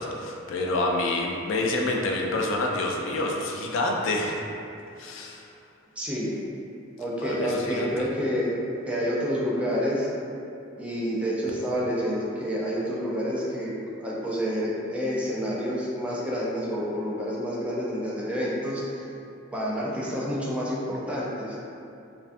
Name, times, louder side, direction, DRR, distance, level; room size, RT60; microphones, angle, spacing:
voice 1, 0.0-4.4 5.0-5.5 7.2-8.1, left 2 dB, 75° left, 0 dB, 0.3 m, -27 dB
voice 2, 6.0-6.4 7.0-8.5 8.9-10.1 10.8-13.7 14.0-19.0 19.5-21.6, equal, 5° right, -6 dB, 0.3 m, -28 dB
2.5 x 2.2 x 2.4 m, 2.7 s
head